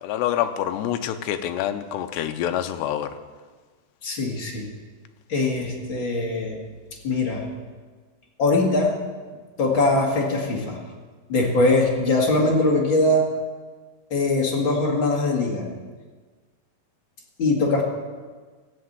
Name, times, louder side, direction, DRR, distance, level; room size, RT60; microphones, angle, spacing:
voice 1, 0.0-3.2, left 11 dB, 80° left, 9 dB, 2.8 m, -26 dB
voice 2, 4.0-4.7 5.3-6.6 7.0-7.5 8.4-9.0 9.6-10.8 11.3-13.3 14.1-15.7 17.4-17.8, left 2 dB, 40° left, -2 dB, 1.9 m, -21 dB
15.5 x 8.4 x 8.0 m, 1.4 s
omnidirectional pair, 4.9 m